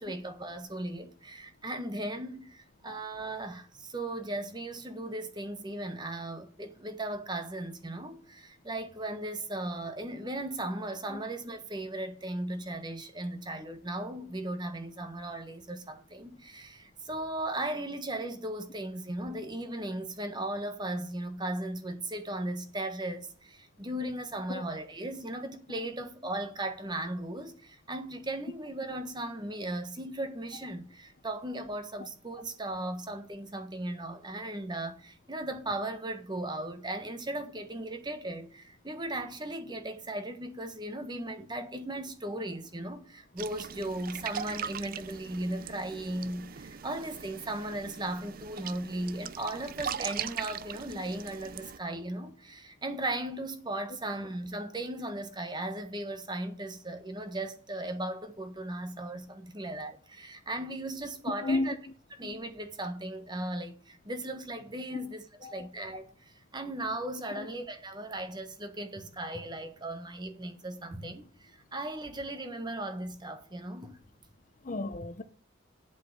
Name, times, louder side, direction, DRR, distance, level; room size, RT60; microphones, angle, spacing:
voice 1, 0.0-61.8 62.2-65.3 65.5-74.0, right 1 dB, 20° right, 1.4 m, -37 dB
sound 1, 43.4-51.8, right 8 dB, 45° right, 0.5 m, -40 dB
voice 2, 74.6-75.2, left 2 dB, 40° left, 0.8 m, -32 dB
8.1 x 7.3 x 6.5 m
head